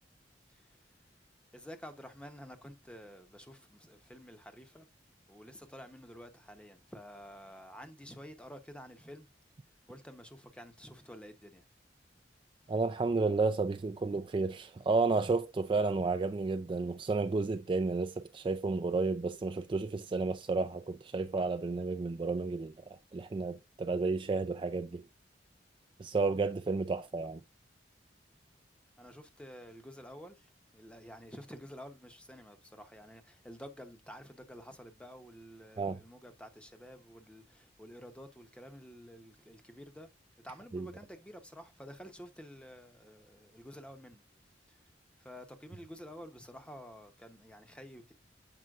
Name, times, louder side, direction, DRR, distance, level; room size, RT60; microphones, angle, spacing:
voice 1, 0.5-0.9 1.5-4.9 5.3-9.3 9.9-11.6 29.0-40.1 40.4-44.2 44.7-48.1, equal, 5° left, 0.7 m, -50 dB
voice 2, 12.7-25.0 26.0-27.4 35.8-36.0 40.7-40.9, right 3 dB, 30° right, 0.3 m, -32 dB
7.6 x 5.5 x 2.4 m
head